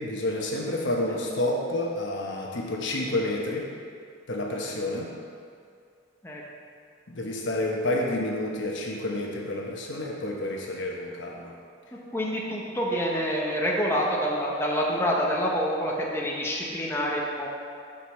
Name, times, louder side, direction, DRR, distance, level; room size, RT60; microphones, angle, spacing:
voice 1, 0.0-3.7 4.3-5.1 7.1-11.5, left 1 dB, 70° left, -1 dB, 1.1 m, -29 dB
voice 2, 12.1-17.5, equal, 15° left, -3 dB, 0.8 m, -27 dB
6.0 x 5.2 x 6.4 m, 2.3 s
head